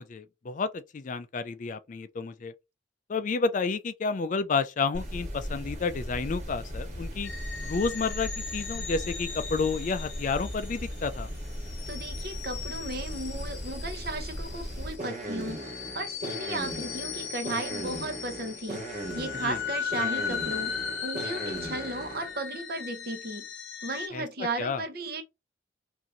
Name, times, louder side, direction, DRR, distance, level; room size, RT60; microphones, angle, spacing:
voice 1, 0.0-2.5 3.1-7.3 7.6-11.3 19.4-19.6 24.1-24.8, left 4 dB, 40° left, 0.4 m, -30 dB
sound 1, 4.9-22.3, equal, 35° right, 1.4 m, -38 dB
sound 2, 7.2-24.1, left 7 dB, 75° left, 0.8 m, -38 dB
voice 2, 11.9-23.5 23.8-25.2, right 2 dB, 55° right, 0.8 m, -35 dB
2.9 x 2.6 x 3.7 m
head